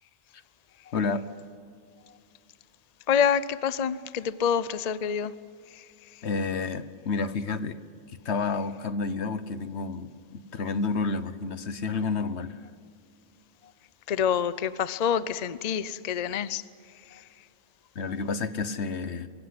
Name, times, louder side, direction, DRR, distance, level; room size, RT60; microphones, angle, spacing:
voice 1, 0.9-1.2 6.2-7.8 8.2-12.6 17.9-19.3, left 4 dB, 80° left, 1.4 m, -30 dB
voice 2, 3.1-5.3 14.1-16.6 17.1-17.2, left 8 dB, 45° left, 0.7 m, -27 dB
24.0 x 16.0 x 9.6 m
omnidirectional pair, 1.1 m